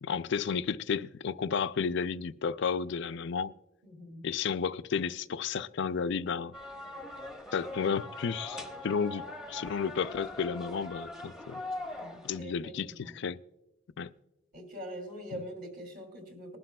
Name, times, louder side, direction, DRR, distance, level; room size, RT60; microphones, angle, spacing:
voice 1, 0.0-3.5 4.2-6.5 7.5-11.6 12.2-13.4 14.0-14.1 15.3-15.4, left 6 dB, 60° left, 0.4 m, -32 dB
voice 2, 3.8-4.3 12.0-13.2 14.5-16.6, equal, 50° right, 2.6 m, -43 dB
sound 1, 6.5-12.4, left 1 dB, 5° right, 0.9 m, -42 dB
20.5 x 11.5 x 2.3 m
head